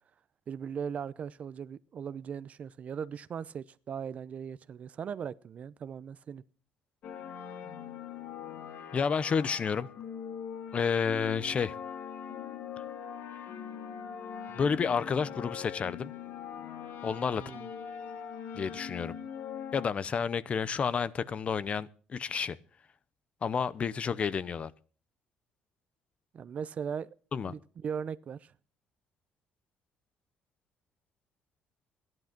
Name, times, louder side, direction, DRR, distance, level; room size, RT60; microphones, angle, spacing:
voice 1, 0.5-6.4 17.4-17.7 26.3-27.1 27.4-28.5, right 7 dB, 45° right, 0.7 m, -38 dB
sound 1, 7.0-19.9, left 8 dB, 70° left, 1.9 m, -42 dB
voice 2, 8.9-9.9 10.7-11.7 14.6-16.1 17.0-17.4 18.5-19.1 19.7-22.6 23.4-24.7 27.3-27.5, left 6 dB, 40° left, 0.7 m, -30 dB
14.5 x 11.0 x 5.9 m
cardioid pair, 100°, 3 cm